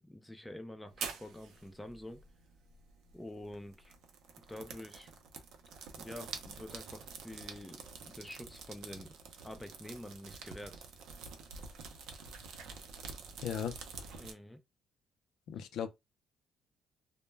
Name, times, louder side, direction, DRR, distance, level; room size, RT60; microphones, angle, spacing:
voice 1, 0.0-2.2 3.1-3.9 4.5-5.1 6.0-9.2 9.4-10.8 14.2-14.6, left 1 dB, 5° left, 0.4 m, -47 dB
sound 1, 0.9-14.3, right 5 dB, 80° right, 0.5 m, -48 dB
voice 2, 13.4-13.8 15.5-15.9, left 8 dB, 70° left, 0.4 m, -36 dB
2.1 x 2.1 x 3.2 m
cardioid pair, 135°, 0 cm